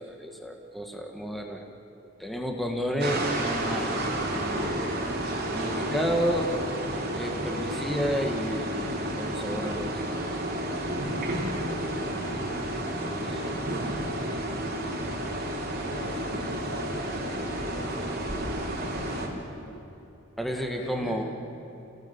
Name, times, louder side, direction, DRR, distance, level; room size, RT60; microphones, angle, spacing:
voice 1, 0.0-1.7 2.0-4.9 5.5-6.6 7.1-10.1 13.1-13.5 20.4-21.2, equal, ahead, 2 dB, 1.9 m, -31 dB
sound 1, 3.0-19.3, right 1 dB, 50° right, 3.6 m, -31 dB
voice 2, 11.4-12.8 15.8-18.3 18.8-19.8 20.6-21.2, left 1 dB, 85° left, -9 dB, 7.5 m, -43 dB
29.5 x 18.0 x 7.2 m, 2.9 s
head